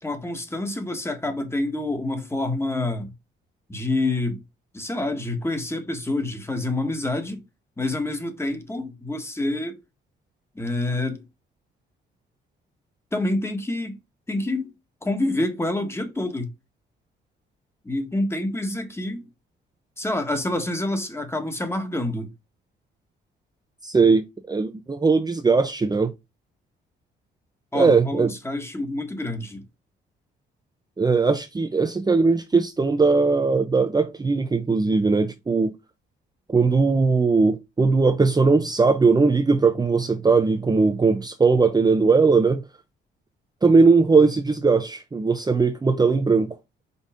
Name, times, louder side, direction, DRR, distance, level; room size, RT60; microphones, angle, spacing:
voice 1, 0.0-3.1 3.7-4.4 4.7-7.4 7.8-9.7 10.5-11.2 13.1-14.0 14.3-14.7 15.0-16.5 17.8-19.3 20.0-22.3 27.7-29.6, left 2 dB, 15° left, 1.6 m, -27 dB
voice 2, 23.8-26.1 27.7-28.3 31.0-35.7 36.5-42.6 43.6-46.6, right 4 dB, 20° right, 0.8 m, -19 dB
5.6 x 4.0 x 5.1 m
cardioid pair, 90°, 20 cm